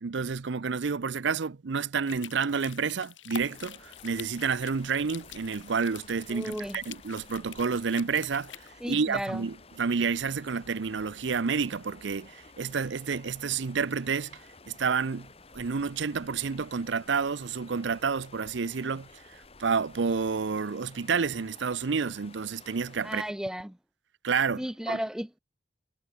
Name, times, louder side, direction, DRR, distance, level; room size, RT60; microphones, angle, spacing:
voice 1, 0.0-8.5 8.9-14.4 14.7-15.3 15.5-19.1 19.6-23.2 24.2-25.0, right 5 dB, 75° right, 0.6 m, -29 dB
sound 1, 2.1-8.7, left 8 dB, 85° left, 3.6 m, -46 dB
sound 2, 3.3-23.3, left 3 dB, 30° left, 2.0 m, -53 dB
voice 2, 6.3-6.8 8.8-9.5 23.0-23.8 24.6-25.4, equal, 5° right, 0.4 m, -34 dB
head